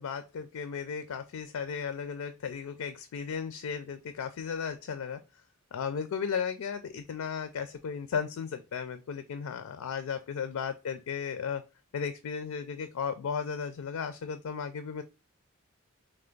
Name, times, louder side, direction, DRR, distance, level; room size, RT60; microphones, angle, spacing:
voice 1, 0.0-5.2 5.7-11.6 11.9-15.0, left 6 dB, 75° left, 11 dB, 0.4 m, -35 dB
3.4 x 3.3 x 3.8 m, 0.30 s
head